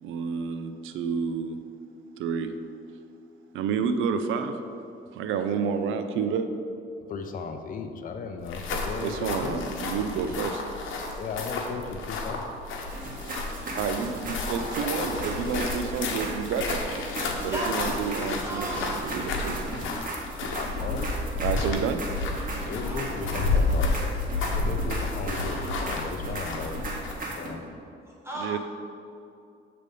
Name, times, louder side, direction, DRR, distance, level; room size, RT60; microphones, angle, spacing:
voice 1, 0.0-1.6 2.2-2.6 3.5-4.6 5.1-6.5 8.7-10.6 13.7-16.8 17.4-19.6 21.4-22.0 28.4-28.6, right 6 dB, 85° right, 8 dB, 0.5 m, -29 dB
voice 2, 7.0-9.6 11.2-12.5 19.8-20.0 20.3-21.1 22.4-23.9 24.4-27.6, left 5 dB, 45° left, 5 dB, 0.5 m, -36 dB
sound 1, 8.4-27.3, left 3 dB, 85° left, 0.9 m, -31 dB
sound 2, 12.9-27.5, right 2 dB, 45° right, 1.6 m, -37 dB
voice 3, 14.8-15.5 17.5-19.0 22.8-23.6 23.9-24.3 28.2-28.6, right 1 dB, 10° right, -4 dB, 0.9 m, -36 dB
7.4 x 3.4 x 5.3 m, 2.5 s
cardioid pair, 90°, 20 cm